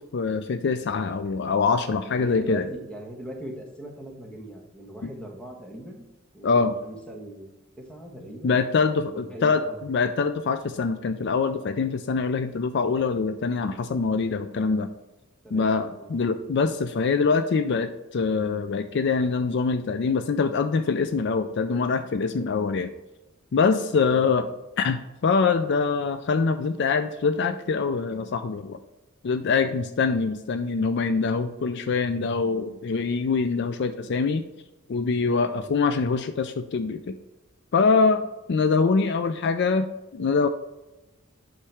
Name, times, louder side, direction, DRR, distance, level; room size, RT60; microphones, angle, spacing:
voice 1, 0.0-2.7 6.4-6.7 8.4-14.9 15.5-22.9 23.5-24.5 24.8-28.8 29.2-34.5 34.9-37.2 37.7-40.5, left 4 dB, 55° left, 10 dB, 0.4 m, -24 dB
voice 2, 2.1-6.0 6.3-7.5 7.8-8.6 9.1-9.8 15.4-15.7 15.9-16.1 24.1-24.3 35.5-35.7, right 1 dB, 5° left, 1 dB, 1.2 m, -40 dB
8.4 x 5.9 x 3.4 m, 1.0 s
head